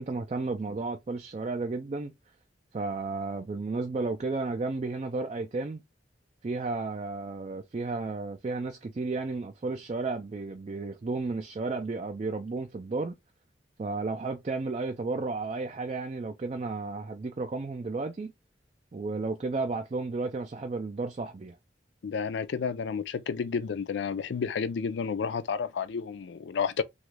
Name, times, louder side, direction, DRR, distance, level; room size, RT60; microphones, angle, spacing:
voice 1, 0.0-2.1 2.7-5.8 6.4-13.1 13.8-18.3 18.9-21.6, right 3 dB, 35° right, 0.3 m, -33 dB
voice 2, 22.0-26.8, left 6 dB, 75° left, 0.4 m, -31 dB
2.9 x 2.4 x 3.1 m
head